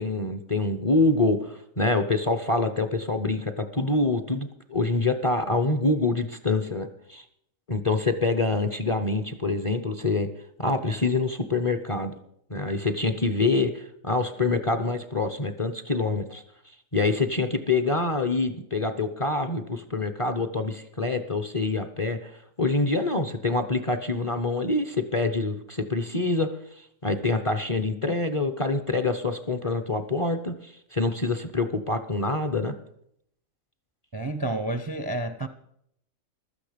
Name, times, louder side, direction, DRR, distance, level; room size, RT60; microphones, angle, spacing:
voice 1, 0.0-7.2 7.7-10.3 10.6-12.1 12.5-16.4 16.9-22.3 22.6-26.5 26.8-32.7, left 3 dB, 30° left, 0.6 m, -26 dB
voice 2, 34.1-35.5, right 2 dB, 25° right, 0.5 m, -30 dB
15.0 x 12.5 x 5.1 m
omnidirectional pair, 1.4 m